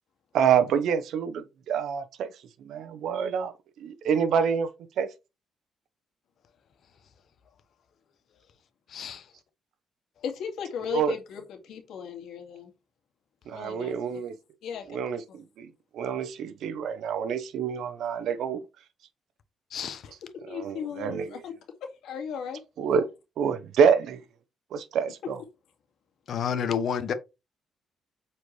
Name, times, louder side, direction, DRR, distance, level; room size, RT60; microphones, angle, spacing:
voice 1, 0.3-2.3 2.6-3.5 3.8-4.7 5.0-5.1 10.9-11.2 13.5-14.3 14.9-15.7 15.9-18.6 20.5-21.4 22.8-23.1 23.4-24.2 24.7-25.4, right 7 dB, 75° right, 0.9 m, -27 dB
voice 2, 8.9-9.3 14.7-14.9 19.7-20.1 26.3-27.1, left 7 dB, 60° left, 1.0 m, -30 dB
voice 3, 10.2-12.7 13.5-14.0 14.6-15.0 15.3-15.4 20.5-21.5 22.0-22.6, left 7 dB, 80° left, 2.1 m, -36 dB
8.0 x 4.4 x 3.2 m
cardioid pair, 90°, 0 cm